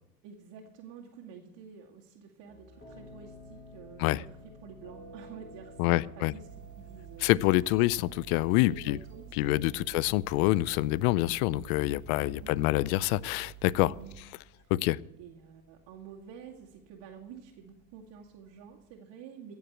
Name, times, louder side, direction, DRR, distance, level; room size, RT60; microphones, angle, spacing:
voice 1, 0.2-6.5 6.8-7.4 8.7-10.0 12.3-12.6 13.8-14.2 14.5-14.7 15.2-19.5, right 7 dB, 55° right, 2.4 m, -49 dB
sound 1, 2.5-18.9, equal, 25° left, 5.7 m, -55 dB
voice 2, 5.8-6.3 7.2-9.0 9.4-13.9 14.7-15.0, left 18 dB, 60° left, 0.6 m, -26 dB
sound 2, 6.5-14.2, right 14 dB, 35° right, 1.2 m, -49 dB
15.5 x 7.2 x 8.3 m
hypercardioid pair, 85°, 49 cm